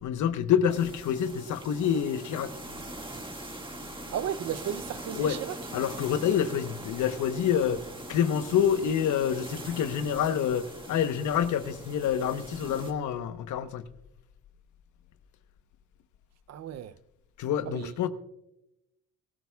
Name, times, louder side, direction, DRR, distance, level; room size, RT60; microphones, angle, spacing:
voice 1, 0.0-2.5 5.1-5.4 5.7-7.8 8.1-13.8 17.4-18.1, left 8 dB, 75° left, 1.0 m, -27 dB
sound 1, 0.7-12.9, right 1 dB, 15° right, 1.9 m, -42 dB
voice 2, 4.1-5.6 16.5-16.9 17.7-18.1, right 9 dB, 60° right, 0.6 m, -34 dB
23.5 x 13.5 x 2.3 m
cardioid pair, 90°, 30 cm